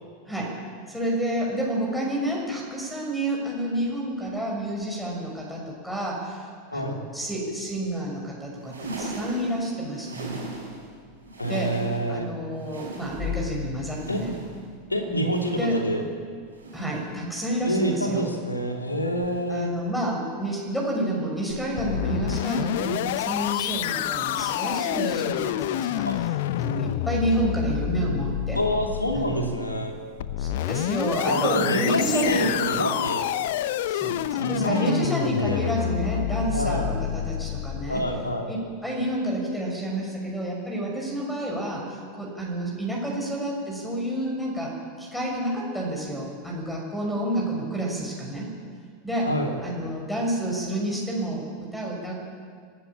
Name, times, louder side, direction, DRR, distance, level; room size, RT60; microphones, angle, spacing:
voice 1, 0.9-10.4 11.4-11.7 12.1-14.3 15.1-15.8 16.7-18.3 19.5-28.6 29.1-29.6 30.4-32.6 33.9-38.1 38.5-48.5 49.0-49.3 49.6-52.1, right 1 dB, 5° left, -2 dB, 6.2 m, -29 dB
sound 1, 8.5-10.9 11.2-12.2 12.5-13.5 13.9-14.7 15.2-15.9 16.5-17.1 17.8-18.4 19.1-19.7 20.5-20.9 21.8-22.1 23.1-23.3 24.5-24.6, right 2 dB, 85° right, 7.4 m, -40 dB
sound 2, 10.8-11.5 13.0-15.6 16.1-16.2 19.2-19.4, left 8 dB, 20° left, 1.3 m, -37 dB
voice 2, 11.4-12.3 14.1-14.2 14.9-16.0 17.6-19.7 26.1-26.2 28.5-29.9 31.2-33.3 34.4-34.9 35.4-35.6 36.5-36.9 37.9-38.5 49.2-49.5, equal, 85° left, 3 dB, 2.9 m, -27 dB
sound 3, 21.5-38.3, left 13 dB, 55° left, 0.7 m, -28 dB
26.0 x 12.5 x 8.7 m, 2.1 s
figure-of-eight pair, 85°, 0 cm